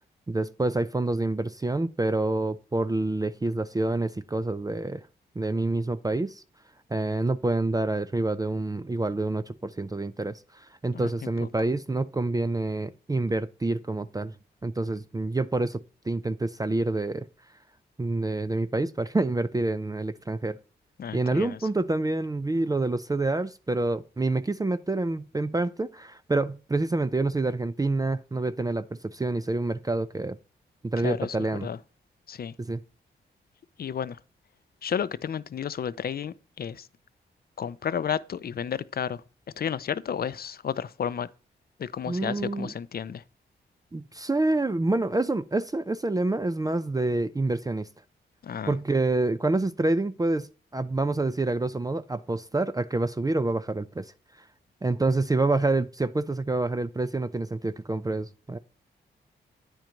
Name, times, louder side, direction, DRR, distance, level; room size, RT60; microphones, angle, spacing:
voice 1, 0.3-5.0 5.4-6.4 6.9-14.3 14.6-17.3 18.0-20.6 21.1-30.4 30.8-31.7 32.6-32.8 42.1-42.7 43.9-47.9 48.7-54.1 54.8-58.6, right 2 dB, 20° right, 0.5 m, -27 dB
voice 2, 21.0-21.6 31.0-31.4 31.6-31.8 32.3-32.5 33.8-34.2 34.8-36.9 37.6-39.2 39.6-41.3 41.8-43.2 48.4-48.7, left 8 dB, 50° left, 0.5 m, -32 dB
9.4 x 4.5 x 5.1 m
supercardioid pair, 50°, 19 cm